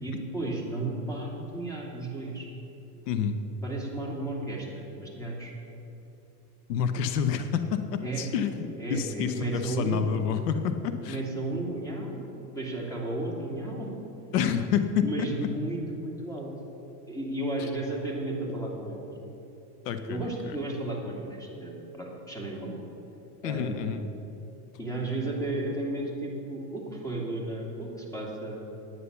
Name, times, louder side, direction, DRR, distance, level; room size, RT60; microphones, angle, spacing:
voice 1, 0.0-2.5 3.6-5.5 8.0-8.3 8.8-10.1 11.1-13.9 15.0-16.5 17.1-19.1 20.1-22.8 23.4-23.9 24.8-28.6, right 2 dB, 5° left, -2 dB, 2.7 m, -33 dB
voice 2, 3.1-3.4 6.7-11.2 14.3-15.1 15.4-15.5 19.8-20.6 23.4-24.0, left 7 dB, 85° left, 9 dB, 0.9 m, -28 dB
9.7 x 9.4 x 6.9 m, 3.0 s
supercardioid pair, 110°, 47 cm